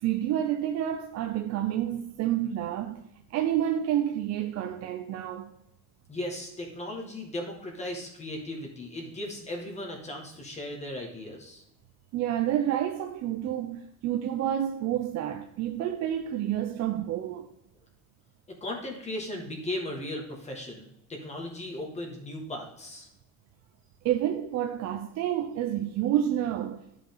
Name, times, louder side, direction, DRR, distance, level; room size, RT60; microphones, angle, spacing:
voice 1, 0.0-3.0 3.3-5.5 12.1-17.5 24.0-26.8, right 11 dB, 50° right, 0.6 m, -29 dB
voice 2, 6.1-11.6 18.6-23.1, left 1 dB, 20° left, 1.9 m, -37 dB
11.5 x 5.2 x 3.8 m
cardioid pair, 140°, 34 cm